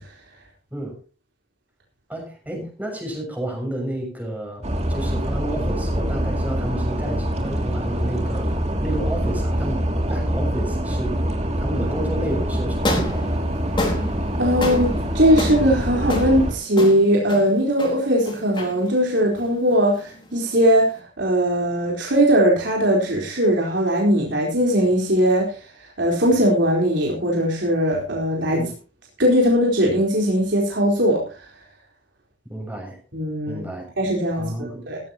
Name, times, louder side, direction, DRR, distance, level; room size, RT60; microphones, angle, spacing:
voice 1, 2.1-11.2 11.6-13.4 28.5-28.7 32.5-33.0 33.5-33.9 34.4-34.8, right 1 dB, 10° right, 1 dB, 6.5 m, -31 dB
sound 1, 4.6-16.5, equal, 35° right, 2.5 m, -25 dB
sound 2, 12.7-21.0, left 1 dB, 25° left, 3.8 m, -31 dB
voice 2, 14.4-14.9 15.1-25.6 26.0-28.6 29.2-31.2 33.1-33.6 34.0-35.0, equal, 70° right, -2 dB, 4.2 m, -19 dB
16.5 x 14.5 x 2.9 m, 0.34 s
head